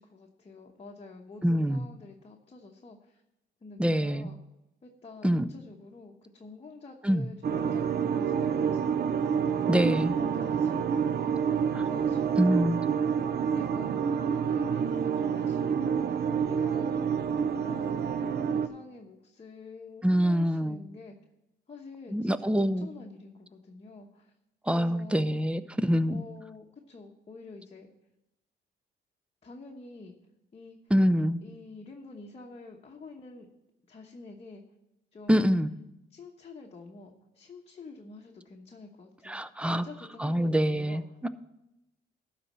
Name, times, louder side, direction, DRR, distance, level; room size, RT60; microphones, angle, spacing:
voice 1, 0.0-3.2 3.6-4.4 4.8-9.1 9.5-10.0 10.3-12.9 13.5-16.1 16.4-17.2 17.6-21.2 21.7-24.3 24.7-25.3 26.1-27.9 29.4-30.1 30.5-30.8 31.4-33.5 33.9-34.6 35.1-35.5 36.1-41.0, left 3 dB, 30° left, 0 dB, 1.1 m, -48 dB
voice 2, 1.4-1.8 3.8-4.3 5.2-5.5 7.0-7.3 9.7-10.1 12.4-12.8 20.0-20.8 22.1-22.9 24.7-26.2 30.9-31.4 35.3-35.7 39.3-39.9 40.2-41.3, equal, 5° right, 13 dB, 0.5 m, -25 dB
sound 1, 7.4-18.7, right 7 dB, 55° right, 0.6 m, -28 dB
12.0 x 4.1 x 7.4 m, 0.90 s
cardioid pair, 90°, 20 cm